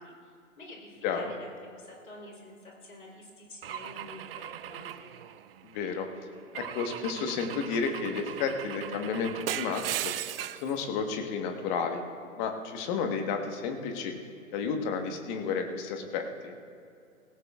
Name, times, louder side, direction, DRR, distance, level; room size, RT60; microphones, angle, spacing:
voice 1, 0.0-5.1, left 1 dB, 85° left, -1 dB, 3.9 m, -48 dB
Car / Engine / Glass, 3.6-5.8 6.5-10.7, right 11 dB, 45° right, 0.5 m, -38 dB
voice 2, 5.6-6.1 6.5-10.1 10.6-12.1 12.4-14.1 14.5-16.5, left 5 dB, 35° left, 5 dB, 1.4 m, -32 dB
18.5 x 16.5 x 2.4 m, 2.4 s
figure-of-eight pair, 120°, 42 cm